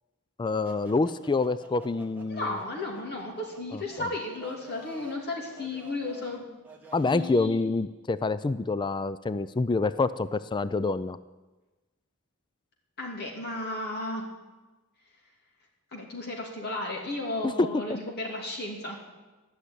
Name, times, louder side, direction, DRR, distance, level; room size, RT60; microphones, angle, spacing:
voice 1, 0.4-2.6 3.7-4.1 6.9-11.2 17.4-18.0, left 3 dB, 20° left, 15 dB, 0.3 m, -27 dB
sound 1, 0.6-7.4, right 2 dB, 10° right, 1.6 m, -51 dB
voice 2, 2.3-6.4 7.0-7.7 13.0-14.3 15.9-19.0, left 2 dB, 45° left, -1 dB, 3.0 m, -34 dB
13.5 x 6.5 x 9.9 m, 1.2 s
head